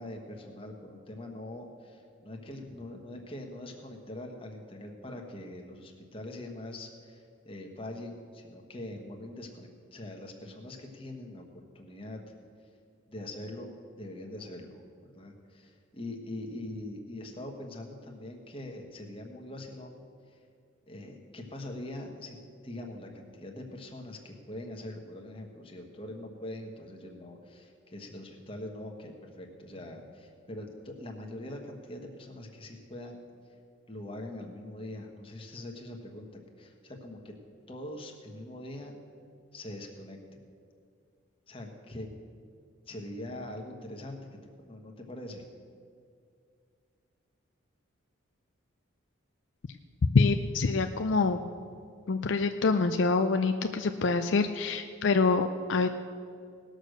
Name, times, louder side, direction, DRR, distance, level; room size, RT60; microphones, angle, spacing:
voice 1, 0.0-12.2 13.1-20.0 20.3-20.4 20.9-22.4 22.6-33.2 33.9-36.3 36.6-37.3 37.7-39.0 39.5-40.2 41.5-42.1 42.9-44.2 44.6-45.4, left 1 dB, 25° left, 2 dB, 1.3 m, -43 dB
voice 2, 50.1-51.4 52.1-55.9, left 4 dB, 65° left, 7 dB, 0.4 m, -26 dB
18.5 x 6.5 x 6.5 m, 2.3 s
head